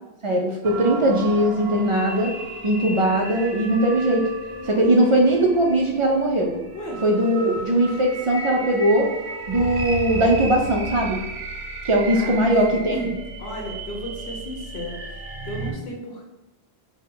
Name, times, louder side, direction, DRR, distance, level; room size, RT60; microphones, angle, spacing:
voice 1, 0.2-2.3 2.6-4.3 4.7-6.6 7.0-9.2 9.5-11.2 11.8-13.0, right 1 dB, 60° right, 1 dB, 0.3 m, -20 dB
sound 1, 0.6-15.7, right 2 dB, 85° right, 0.9 m, -34 dB
voice 2, 12.1-13.1 13.4-16.3, equal, 90° left, 0 dB, 1.0 m, -33 dB
4.1 x 2.2 x 3.8 m, 0.96 s
omnidirectional pair, 1.0 m